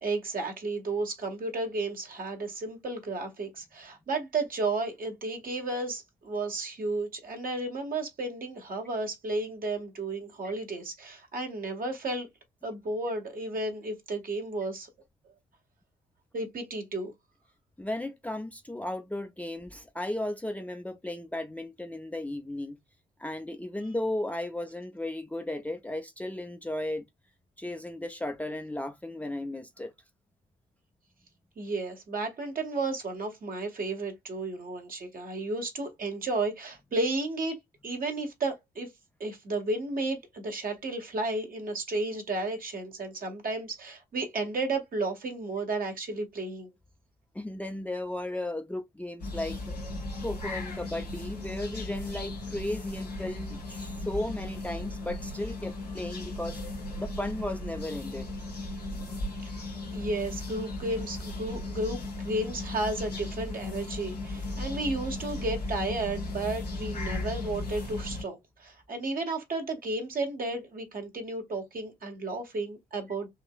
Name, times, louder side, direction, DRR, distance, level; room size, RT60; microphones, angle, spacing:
voice 1, 0.0-12.3 12.6-14.9 16.3-17.1 31.6-37.6 37.8-38.9 39.2-46.7 59.4-73.3, right 2 dB, 45° right, 1.8 m, -33 dB
voice 2, 17.8-22.8 23.2-27.0 27.6-29.9 47.3-49.7 50.2-56.6 57.0-58.3, left 1 dB, 5° left, 0.7 m, -35 dB
sound 1, 49.2-68.2, left 2 dB, 90° left, 1.1 m, -36 dB
5.5 x 2.9 x 2.4 m
figure-of-eight pair, 40°, 20 cm